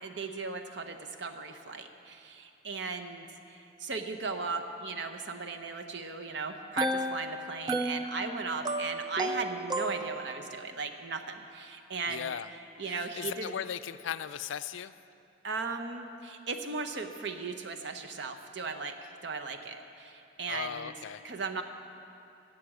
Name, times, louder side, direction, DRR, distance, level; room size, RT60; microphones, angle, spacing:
voice 1, 0.0-12.3 12.8-13.5 15.4-20.9 21.2-21.6, right 4 dB, 60° right, 7 dB, 0.8 m, -37 dB
sound 1, 6.5-10.5, right 1 dB, 20° right, 0.4 m, -33 dB
voice 2, 12.1-12.5 12.9-14.9 20.5-21.2, left 8 dB, 75° left, 13 dB, 0.4 m, -37 dB
12.0 x 7.5 x 7.6 m, 2.7 s
head